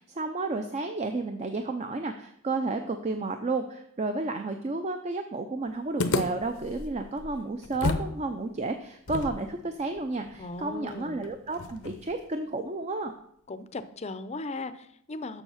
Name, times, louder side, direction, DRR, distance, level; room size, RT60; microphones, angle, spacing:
voice 1, 0.0-13.1, right 3 dB, 35° right, 6 dB, 0.5 m, -32 dB
sound 1, 6.0-8.2 8.4-8.5 9.1-12.2, left 3 dB, 85° left, 0.7 m, -33 dB
voice 2, 10.4-11.2 13.5-15.4, left 3 dB, 30° left, 11 dB, 0.5 m, -37 dB
7.2 x 6.5 x 5.7 m, 0.71 s
head